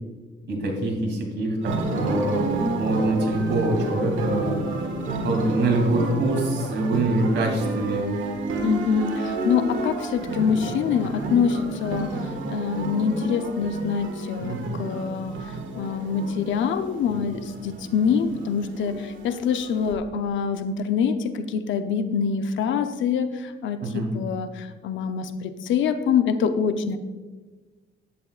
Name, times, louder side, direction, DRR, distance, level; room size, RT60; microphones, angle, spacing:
voice 1, 0.5-2.5 2.8-4.6 5.2-8.1 14.4-14.6 23.8-24.1, right 2 dB, 60° right, 1 dB, 2.8 m, -24 dB
sound 1, 1.6-19.9, right 2 dB, 80° right, 1.6 m, -30 dB
voice 2, 8.6-27.0, left 6 dB, 75° left, 10 dB, 0.7 m, -25 dB
11.0 x 9.5 x 2.4 m, 1.3 s
cardioid pair, 90°, 20 cm